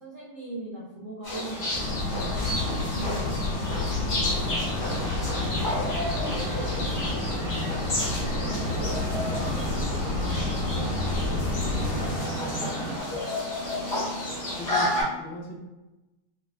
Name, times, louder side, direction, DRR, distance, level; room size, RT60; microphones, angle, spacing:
voice 1, 0.0-7.2 7.7-12.3 12.5-13.2, right 2 dB, 70° right, -6 dB, 0.7 m, -42 dB
sound 1, 1.2-15.0, left 1 dB, 40° left, 1.5 m, -32 dB
sound 2, 1.7-12.2, left 3 dB, 85° left, 1.9 m, -30 dB
sound 3, 4.3-13.0, right 3 dB, 90° right, 1.5 m, -36 dB
voice 2, 13.8-15.6, equal, 70° left, -2 dB, 1.3 m, -40 dB
4.6 x 2.4 x 2.3 m, 1.0 s
omnidirectional pair, 2.4 m